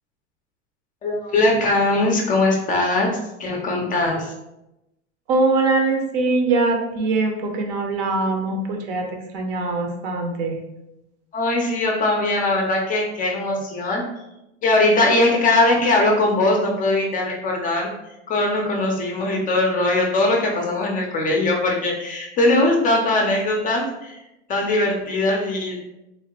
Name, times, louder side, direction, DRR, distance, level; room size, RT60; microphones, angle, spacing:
voice 1, 1.0-4.3 11.3-14.0 14.6-17.9 18.3-24.2 24.5-25.8, left 2 dB, 25° left, 0 dB, 0.4 m, -20 dB
voice 2, 5.3-9.1 9.3-10.6, right 3 dB, 55° right, 3 dB, 0.7 m, -22 dB
3.1 x 2.1 x 2.9 m, 0.90 s
supercardioid pair, 120°, 34 cm